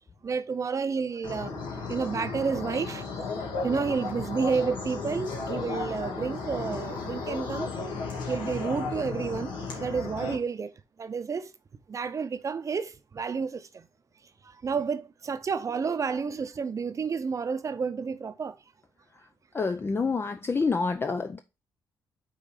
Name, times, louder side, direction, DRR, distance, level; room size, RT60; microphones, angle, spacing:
voice 1, 0.2-1.5 1.9-3.0 3.6-7.7 8.3-9.5 9.8-10.7 11.0-11.5 11.9-13.9 14.4-18.6, right 5 dB, 40° right, 0.7 m, -30 dB
sound 1, 1.2-10.3, left 4 dB, 85° left, 1.8 m, -34 dB
voice 2, 19.5-21.4, left 4 dB, 30° left, 0.5 m, -28 dB
5.4 x 3.8 x 5.0 m
cardioid pair, 75°, 8 cm